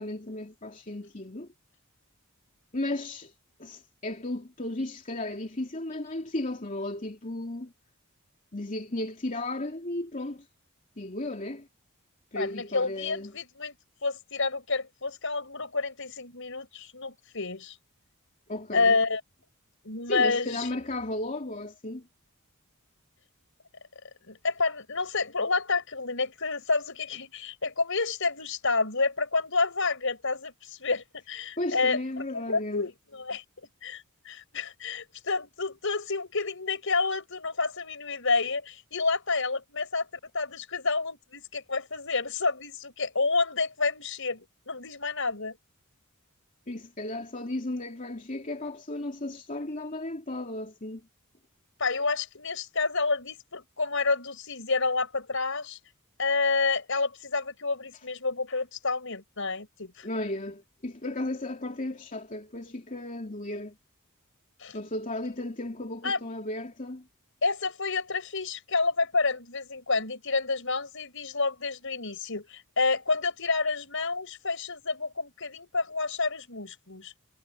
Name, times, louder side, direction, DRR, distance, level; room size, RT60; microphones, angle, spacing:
voice 1, 0.0-1.5 2.7-3.3 3.6-7.7 8.5-10.5 11.0-11.7 12.3-13.3 18.5-19.0 20.1-22.1 31.6-32.8 46.7-51.0 60.0-63.8 64.7-67.0, left 1 dB, 35° left, 2.8 m, -34 dB
voice 2, 12.3-13.7 14.0-17.8 18.7-19.2 19.8-20.7 24.3-33.4 33.8-40.1 40.3-45.6 51.8-55.8 56.2-60.1 64.6-64.8 66.0-66.2 67.4-77.2, left 4 dB, 60° left, 6.6 m, -29 dB
head